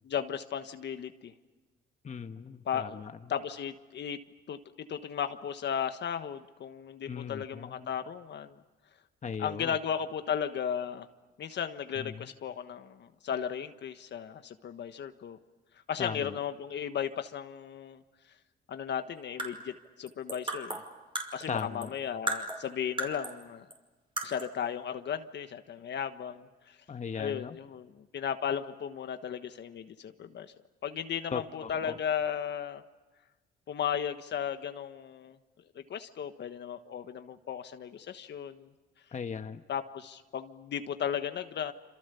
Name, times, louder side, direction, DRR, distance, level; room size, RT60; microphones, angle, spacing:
voice 1, 0.0-1.3 2.6-4.2 4.5-8.6 9.4-11.1 11.4-15.4 15.9-18.0 18.7-19.7 20.0-20.8 21.3-23.7 24.2-26.8 27.2-30.5 30.8-32.8 33.7-35.4 35.7-38.7 39.7-41.7, left 8 dB, 60° left, 9 dB, 1.4 m, -35 dB
voice 2, 2.0-3.1 7.1-7.9 9.2-9.8 12.0-12.3 16.0-16.4 21.5-21.9 26.9-27.5 31.3-31.9 39.1-39.6, left 6 dB, 35° left, 8 dB, 1.3 m, -38 dB
sound 1, 19.2-21.9 22.3-23.4 23.7-23.8 24.2-24.6, right 2 dB, 25° right, 5.4 m, -36 dB
27.5 x 27.0 x 7.0 m, 1.2 s
cardioid pair, 90°, 20 cm